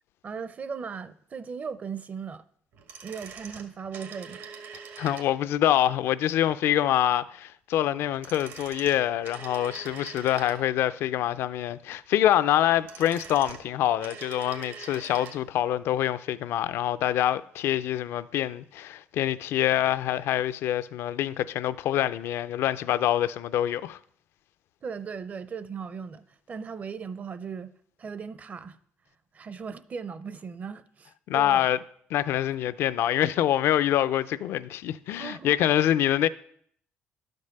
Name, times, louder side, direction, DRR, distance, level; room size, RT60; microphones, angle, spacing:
voice 1, 0.2-2.4 3.0-4.5 24.8-27.7 28.0-28.8 29.3-31.7 35.2-35.5 36.0-36.1, right 6 dB, 40° right, 0.6 m, -38 dB
sound 1, 2.7-5.6 8.0-10.9 12.6-15.4 15.7-15.8, right 6 dB, 80° right, 1.7 m, -44 dB
voice 2, 5.0-24.0 31.3-31.8 32.1-36.3, left 12 dB, 75° left, 0.4 m, -25 dB
11.5 x 5.4 x 6.6 m
cardioid pair, 105°, 4 cm